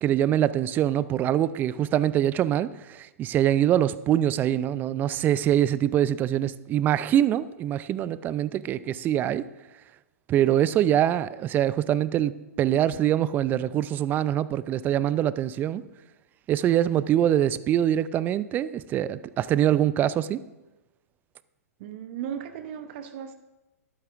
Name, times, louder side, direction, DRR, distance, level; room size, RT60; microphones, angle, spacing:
voice 1, 0.0-9.5 10.3-12.3 12.6-15.8 16.5-20.4, right 11 dB, 20° right, 0.4 m, -24 dB
voice 2, 21.8-23.3, right 9 dB, 45° right, 0.8 m, -36 dB
13.0 x 12.0 x 2.5 m
figure-of-eight pair, 115°, 8 cm